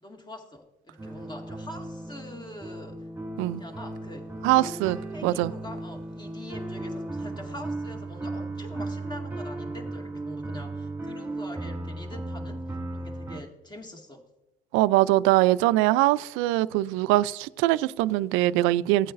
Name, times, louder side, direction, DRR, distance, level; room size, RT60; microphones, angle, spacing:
voice 1, 0.0-3.1 3.6-4.3 5.1-14.3, left 1 dB, 20° left, 2.0 m, -44 dB
sound 1, 1.0-13.4, right 2 dB, 10° right, 1.9 m, -36 dB
voice 2, 4.4-5.5 14.7-19.1, right 16 dB, 80° right, 0.4 m, -22 dB
16.0 x 8.6 x 2.5 m
supercardioid pair, 80°, 20 cm